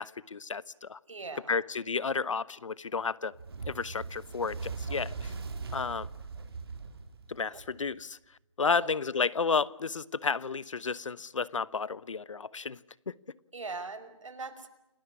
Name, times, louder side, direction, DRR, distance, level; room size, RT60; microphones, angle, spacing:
voice 1, 0.0-1.0 1.5-3.3 3.6-5.3 5.7-6.1 7.3-8.2 8.6-12.8, left 5 dB, 70° left, 1.1 m, -32 dB
voice 2, 1.1-1.6 8.6-9.0 13.5-14.7, right 3 dB, 75° right, 5.3 m, -40 dB
Fire, 3.3-7.9, right 4 dB, 50° right, 3.8 m, -40 dB
29.0 x 19.5 x 9.8 m
hypercardioid pair, 170°, 17 cm